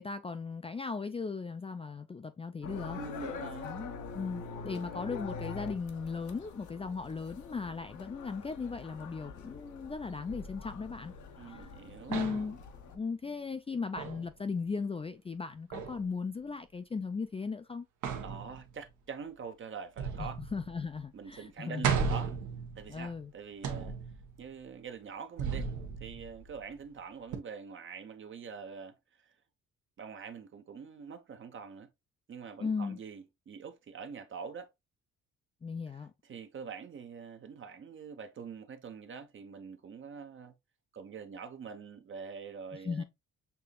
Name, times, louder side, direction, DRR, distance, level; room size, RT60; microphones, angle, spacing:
voice 1, 0.0-3.0 3.6-11.1 11.5-11.7 12.1-12.6 12.9-17.9 20.2-21.9 22.9-23.3 32.6-33.0 35.6-36.1 42.7-43.0, left 4 dB, 20° left, 0.4 m, -37 dB
sound 1, 2.6-13.0, left 5 dB, 80° left, 0.9 m, -45 dB
voice 2, 2.9-3.7 11.4-12.1 18.2-20.4 21.1-22.3 22.8-23.9 24.4-25.7 26.0-29.0 30.0-31.9 32.3-34.7 36.3-40.5 40.9-43.0, right 6 dB, 40° right, 0.8 m, -44 dB
sound 2, 10.3-11.7 12.1-12.7 14.0-14.3 15.7-16.1 18.0-18.9 20.0-21.0 21.3-21.4 21.8-23.2 23.6-24.4 25.4-26.7 27.3-27.4, right 6 dB, 75° right, 1.1 m, -36 dB
6.9 x 2.8 x 2.3 m
cardioid pair, 90°, 30 cm